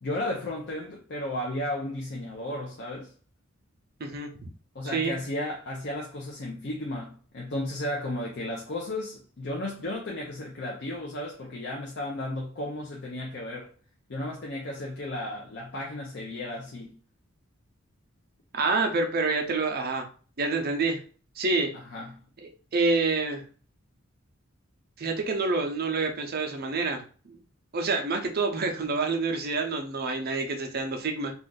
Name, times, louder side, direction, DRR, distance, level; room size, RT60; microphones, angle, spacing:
voice 1, 0.0-3.1 4.7-13.7 14.1-16.9 21.7-22.1, left 1 dB, 55° left, 0.6 m, -34 dB
voice 2, 18.5-20.1 20.4-21.0 21.4-21.7 22.7-23.4 25.0-27.4 27.7-31.3, right 3 dB, 45° right, 0.6 m, -27 dB
2.5 x 2.4 x 3.8 m
head